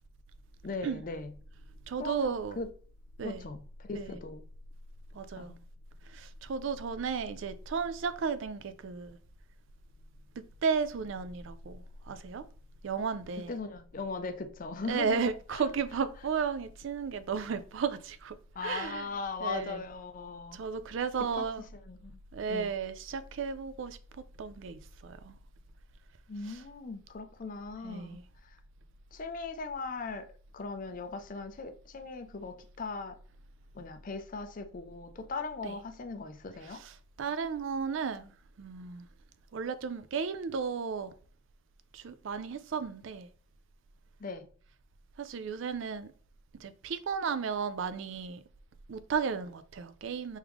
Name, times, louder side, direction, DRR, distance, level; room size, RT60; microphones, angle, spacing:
voice 1, 0.6-1.3 2.0-2.7 3.2-4.4 5.3-5.6 13.5-15.7 18.6-20.6 21.3-21.5 21.9-22.2 22.5-22.8 26.3-28.6 29.1-30.3 30.5-33.2 33.7-36.8 44.2-44.5, left 4 dB, 40° left, 0.4 m, -39 dB
voice 2, 1.9-2.6 3.2-3.5 3.9-4.2 5.1-5.5 6.0-9.2 10.6-12.4 12.8-13.5 14.8-19.1 19.4-19.8 20.5-21.7 22.3-24.0 24.4-25.3 26.4-26.6 27.8-28.2 35.6-35.8 36.6-38.3 38.6-39.1 39.5-41.1 41.9-43.3 45.2-46.1 46.6-48.4 48.9-50.4, right 6 dB, 60° right, 0.4 m, -34 dB
3.6 x 3.2 x 3.4 m
head